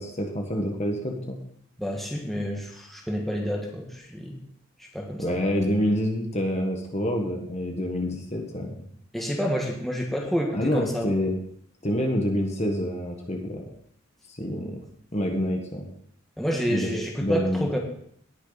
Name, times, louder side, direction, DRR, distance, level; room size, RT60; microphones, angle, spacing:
voice 1, 0.0-1.4 5.2-8.7 10.5-11.3 11.8-13.6 14.3-14.8 15.1-15.9 16.7-17.8, equal, 30° left, 2 dB, 1.5 m, -27 dB
voice 2, 1.8-4.4 4.8-5.4 9.1-11.1 16.4-17.8, equal, ahead, -1 dB, 1.5 m, -29 dB
18.5 x 6.3 x 4.1 m, 0.65 s
head